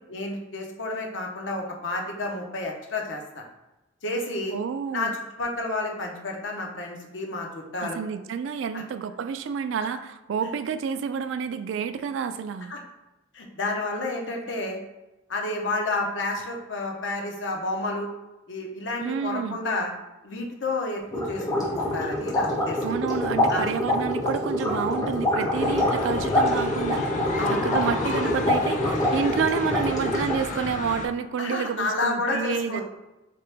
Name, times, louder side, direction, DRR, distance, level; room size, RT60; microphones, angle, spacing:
voice 1, 0.1-3.4 4.0-4.6 4.9-8.0 8.7-8.8 10.4-10.5 12.7-12.8 13.3-14.8 15.3-18.1 18.5-19.9 20.2-22.8 23.5-23.7 27.4-27.6 31.4-32.8, left 2 dB, 75° left, 0 dB, 0.7 m, -30 dB
voice 2, 4.5-5.1 7.8-12.7 19.0-19.6 22.8-27.0 27.5-32.8, right 6 dB, 80° right, 11 dB, 0.3 m, -29 dB
sound 1, 21.1-30.5, left 1 dB, 20° left, 1.0 m, -25 dB
sound 2, 25.5-31.1, left 3 dB, 40° left, 0.4 m, -33 dB
3.7 x 2.9 x 3.3 m, 1.0 s
head